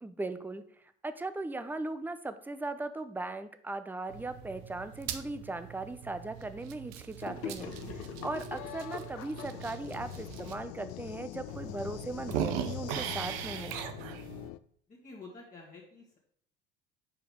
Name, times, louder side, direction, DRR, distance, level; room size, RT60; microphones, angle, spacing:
voice 1, 0.0-0.6 1.0-13.8, right 2 dB, 5° right, 11 dB, 0.5 m, -38 dB
sound 1, 4.1-10.5 11.1-11.2 11.5-14.5, right 10 dB, 80° right, 0.7 m, -40 dB
Gurgling / Sink (filling or washing), 7.2-11.7, left 6 dB, 50° left, 1.0 m, -44 dB
sound 2, 7.6-14.6, left 16 dB, 70° left, 0.4 m, -44 dB
voice 2, 14.9-16.2, left 3 dB, 25° left, -5 dB, 1.6 m, -49 dB
5.1 x 4.8 x 5.0 m, 0.64 s
hypercardioid pair, 70°, 29 cm